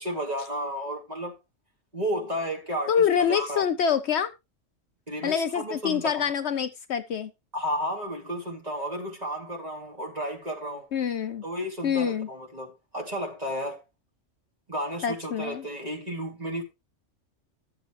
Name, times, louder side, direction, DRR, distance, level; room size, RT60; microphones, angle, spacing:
voice 1, 0.0-1.3 1.9-3.6 5.1-6.3 7.5-10.9 11.4-13.8 14.7-16.6, equal, 30° right, 2.7 m, -32 dB
voice 2, 2.9-4.3 5.2-7.3 10.9-11.4 11.8-12.3 15.0-15.6, left 7 dB, 65° left, 0.9 m, -26 dB
12.5 x 7.6 x 3.2 m
omnidirectional pair, 1.3 m